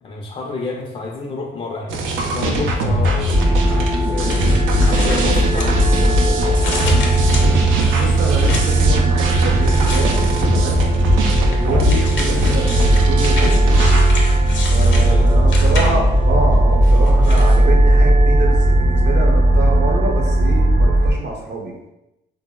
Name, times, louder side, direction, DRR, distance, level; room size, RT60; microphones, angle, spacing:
voice 1, 0.0-2.0 2.3-4.4 4.8-7.2 15.0-15.4, left 3 dB, 30° left, -1 dB, 0.4 m, -29 dB
sound 1, 1.9-14.1, equal, 80° right, 0.4 m, -21 dB
sound 2, 3.3-21.1, right 1 dB, 25° right, 0.5 m, -16 dB
sound 3, 4.0-6.1 6.5-8.9 9.6-10.6 11.2-16.2 16.8-17.6, left 2 dB, 70° left, 0.6 m, -31 dB
voice 2, 7.9-10.8 11.5-13.7 14.7-21.7, right 2 dB, 60° right, -1 dB, 0.8 m, -26 dB
3.4 x 2.0 x 2.2 m, 0.91 s
cardioid pair, 90°, 20 cm